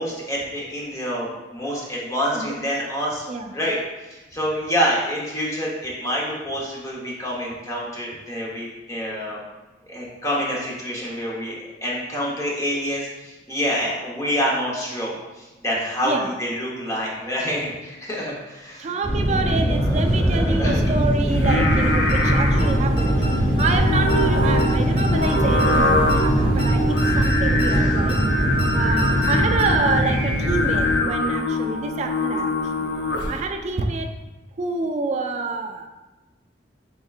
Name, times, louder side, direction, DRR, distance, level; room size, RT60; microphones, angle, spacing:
voice 1, 0.0-3.3 3.5-3.8 4.1-9.4 9.9-11.6 11.8-18.9 19.6-20.8, equal, 20° left, -4 dB, 0.9 m, -27 dB
voice 2, 2.3-2.7 3.3-3.5 16.0-16.3 18.8-28.2 28.7-32.9 33.3-34.1 34.6-35.9, right 3 dB, 40° right, 5 dB, 0.3 m, -27 dB
sound 1, 19.0-30.9, equal, 5° right, 1.2 m, -21 dB
Singing, 21.3-33.5, left 1 dB, 70° left, 0.6 m, -24 dB
sound 2, 21.6-21.8 22.1-22.2 22.6-22.7 23.0-23.3 23.6-23.8 24.1-24.2 24.6-24.7 25.0-25.3 25.6-25.8 26.1-26.2 26.6-26.7 27.0-27.3 27.6-27.8 28.1-28.2 28.6-28.7 29.0-29.3 29.6-29.7, left 1 dB, 55° left, 1.3 m, -33 dB
4.5 x 3.6 x 2.4 m, 1.1 s
head